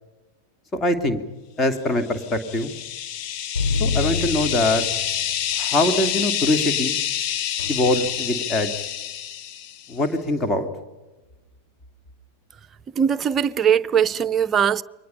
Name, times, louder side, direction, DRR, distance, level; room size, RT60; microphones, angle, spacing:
voice 1, 0.7-1.2 1.6-2.7 3.8-4.8 5.6-7.0 7.7-8.9 9.9-10.7, left 1 dB, 20° left, 2.5 m, -23 dB
sound 1, 2.1-9.9, left 10 dB, 40° left, 1.4 m, -27 dB
sound 2, 3.5-5.3 7.6-8.5, left 5 dB, 75° left, 2.6 m, -27 dB
voice 2, 13.0-14.8, right 8 dB, 25° right, 0.7 m, -20 dB
29.5 x 23.5 x 5.7 m
figure-of-eight pair, 90°, 0 cm